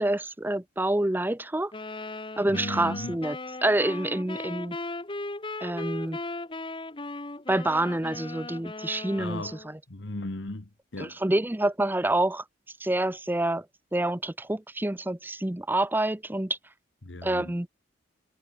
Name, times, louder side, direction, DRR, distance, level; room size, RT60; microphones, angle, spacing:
voice 1, 0.0-1.7 2.4-3.4 3.6-4.8 5.6-6.2 7.5-9.8 11.0-12.4 12.8-13.6 13.9-16.6 17.2-17.7, right 1 dB, 10° right, 0.7 m, -27 dB
sound 1, 1.7-9.7, left 2 dB, 25° left, 1.4 m, -37 dB
voice 2, 2.5-3.2 9.2-9.6 9.9-11.2 17.0-17.6, left 2 dB, 65° left, 1.4 m, -36 dB
head